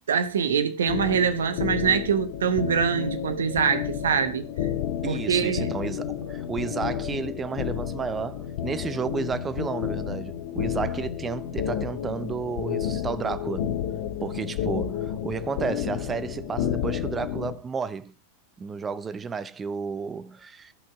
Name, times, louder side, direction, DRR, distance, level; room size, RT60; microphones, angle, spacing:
voice 1, 0.0-4.7 5.1-5.7, right 7 dB, 65° right, 1.0 m, -24 dB
sound 1, 0.9-17.5, left 10 dB, 55° left, 1.0 m, -31 dB
voice 2, 5.0-13.8 14.2-18.1 18.6-20.7, right 5 dB, 20° right, 0.6 m, -32 dB
15.0 x 5.6 x 3.5 m
figure-of-eight pair, 90°, 0 cm